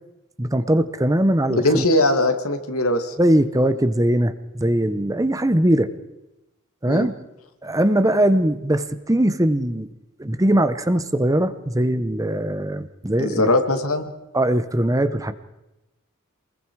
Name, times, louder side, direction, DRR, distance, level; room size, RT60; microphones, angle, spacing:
voice 1, 0.4-1.8 3.2-5.9 6.8-7.1 7.6-9.9 10.2-13.5 14.3-15.3, right 1 dB, 15° right, 12 dB, 1.0 m, -20 dB
voice 2, 1.5-3.1 6.9-7.1 13.2-14.1, left 1 dB, 85° left, 8 dB, 2.3 m, -20 dB
28.0 x 21.0 x 4.8 m, 0.93 s
head